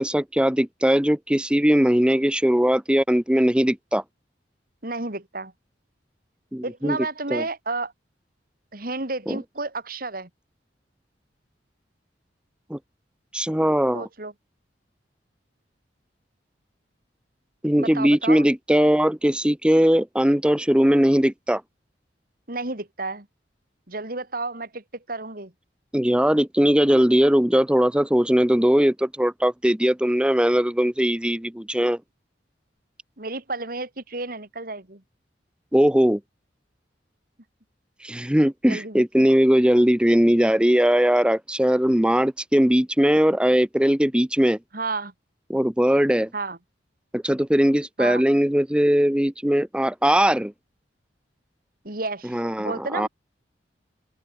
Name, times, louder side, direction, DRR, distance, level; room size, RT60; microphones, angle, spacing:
voice 1, 0.0-4.0 6.5-7.0 7.3-7.4 9.3-9.4 12.7-12.8 13.3-14.1 17.6-21.6 25.9-32.0 35.7-36.2 38.0-44.6 45.5-46.3 47.1-50.5 52.3-53.1, equal, 5° right, 0.8 m, -20 dB
voice 2, 4.8-5.5 6.6-7.9 8.7-10.3 13.9-14.3 17.8-18.5 22.5-23.3 23.9-25.5 33.2-35.0 38.7-39.2 44.7-45.1 46.3-46.6 48.0-48.2 51.8-53.1, right 3 dB, 50° right, 3.1 m, -31 dB
head